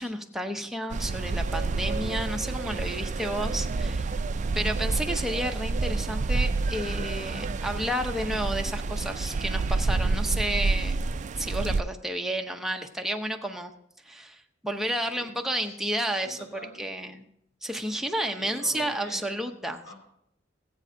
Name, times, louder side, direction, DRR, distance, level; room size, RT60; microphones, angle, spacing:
voice 1, 0.0-4.1 4.6-11.0 11.4-13.7 14.0-17.3 17.6-19.8, right 1 dB, ahead, 3 dB, 0.7 m, -31 dB
sound 1, 0.9-11.8, right 3 dB, 40° right, 0.3 m, -28 dB
voice 2, 14.8-15.8 16.1-16.9 18.4-19.9, equal, 60° left, 0 dB, 2.8 m, -48 dB
19.0 x 8.3 x 2.7 m, 0.75 s
head